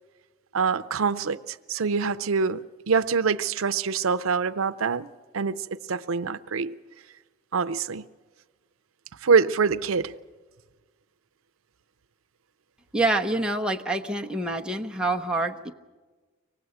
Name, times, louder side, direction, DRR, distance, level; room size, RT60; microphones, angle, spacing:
voice 1, 0.5-5.1 5.3-6.8 7.5-8.1 9.2-10.1, right 5 dB, 90° right, 0.6 m, -25 dB
voice 2, 12.9-15.7, right 2 dB, 5° right, 0.9 m, -26 dB
24.5 x 19.0 x 8.0 m
head